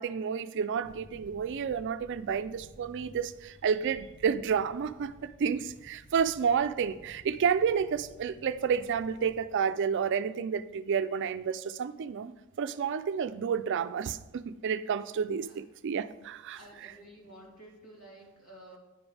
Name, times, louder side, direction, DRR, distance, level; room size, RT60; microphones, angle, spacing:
voice 1, 0.0-16.6, right 7 dB, 55° right, 0.4 m, -30 dB
sound 1, 0.8-9.4, equal, 35° left, 1.0 m, -55 dB
voice 2, 16.5-18.8, right 1 dB, 70° left, 2.9 m, -52 dB
9.8 x 5.2 x 4.8 m
head